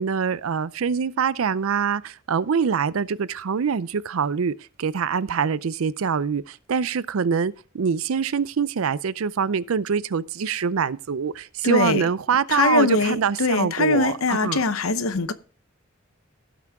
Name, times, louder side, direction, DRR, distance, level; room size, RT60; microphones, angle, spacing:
voice 1, 0.0-14.6, right 6 dB, 75° right, 0.5 m, -24 dB
voice 2, 11.6-12.1 12.5-15.3, left 3 dB, 80° left, 0.8 m, -22 dB
16.5 x 6.0 x 3.6 m
head